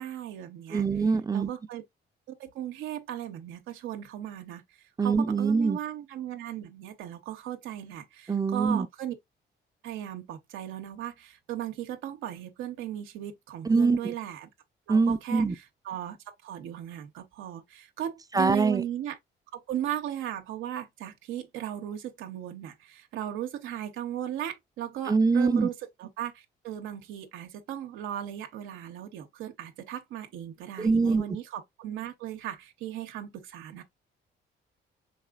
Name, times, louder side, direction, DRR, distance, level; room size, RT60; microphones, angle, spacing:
voice 1, 0.0-0.9 1.3-1.8 2.3-4.6 5.0-9.2 9.8-14.5 14.9-19.2 19.5-33.8, right 11 dB, 90° right, 0.7 m, -37 dB
voice 2, 0.7-1.5 5.0-5.8 8.3-8.9 13.7-14.0 14.9-15.5 18.3-18.8 25.1-25.7 30.8-31.2, right 4 dB, 20° right, 0.4 m, -23 dB
4.8 x 4.1 x 2.3 m
cardioid pair, 90°, 20 cm